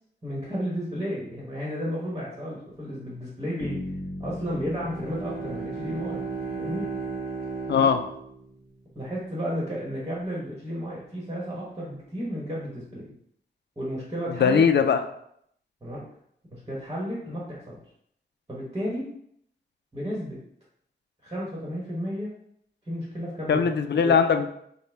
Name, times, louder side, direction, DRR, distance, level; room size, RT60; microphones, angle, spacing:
voice 1, 0.2-3.8 4.2-6.2 6.5-6.9 8.9-13.1 13.8-14.6 15.8-16.0 16.5-17.8 18.5-19.1 19.9-20.4 21.2-22.3 22.9-24.2, equal, 20° right, -5 dB, 1.2 m, -33 dB
Bass guitar, 3.6-7.6, left 1 dB, 25° left, 0.9 m, -39 dB
Bowed string instrument, 4.6-9.0, right 5 dB, 50° right, 0.8 m, -35 dB
voice 2, 7.7-8.0 14.3-15.0 23.5-24.5, left 6 dB, 65° left, 7 dB, 0.4 m, -20 dB
5.5 x 2.2 x 3.4 m, 0.70 s
wide cardioid pair, 125°, 19 cm